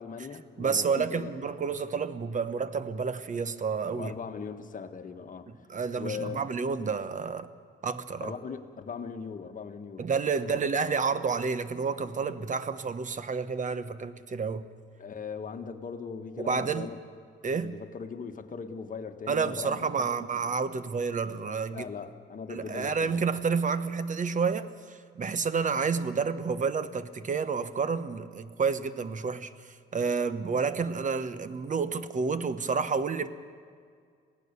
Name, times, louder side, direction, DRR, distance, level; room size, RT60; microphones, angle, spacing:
voice 1, 0.0-1.3 4.0-5.5 6.0-6.4 8.2-10.1 10.5-10.6 15.0-16.9 17.5-20.6 21.7-23.3, left 6 dB, 45° left, 1.6 m, -39 dB
voice 2, 0.6-4.1 5.7-7.5 7.8-8.3 10.0-14.7 16.4-16.9 17.4-17.8 19.3-21.9 22.5-33.3, right 5 dB, 40° right, 1.1 m, -30 dB
26.5 x 17.0 x 7.0 m
cardioid pair, 90°, 20 cm